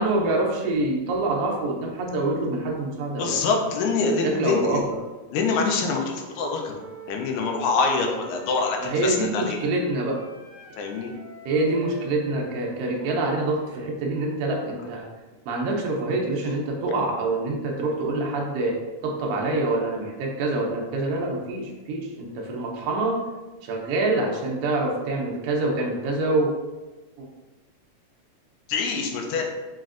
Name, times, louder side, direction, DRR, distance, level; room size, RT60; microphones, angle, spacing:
voice 1, 0.0-3.4 3.8-3.9 4.2-4.8 8.8-10.2 11.4-15.1 15.5-18.7 19.0-23.2 23.6-26.5 27.2-27.3, right 2 dB, 75° right, -1 dB, 1.4 m, -26 dB
voice 2, 3.2-4.8 5.3-6.8 7.1-9.6 10.8-11.1 28.7-29.4, left 4 dB, 85° left, 1 dB, 2.0 m, -25 dB
Wind instrument woodwind instrument, 6.2-9.9 10.1-14.0, right 2 dB, 55° right, 1.5 m, -45 dB
5.9 x 2.5 x 2.4 m, 1.2 s
omnidirectional pair, 3.4 m